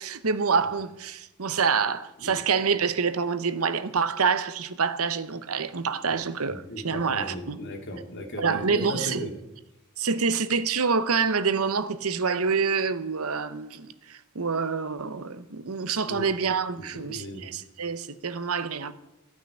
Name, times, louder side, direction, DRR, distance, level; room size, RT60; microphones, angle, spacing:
voice 1, 0.0-7.6 8.4-9.3 10.0-18.9, right 5 dB, 70° right, 0.9 m, -27 dB
voice 2, 6.5-9.3 16.1-16.3 16.8-17.4, equal, 55° left, 2.6 m, -36 dB
15.5 x 6.0 x 9.9 m
head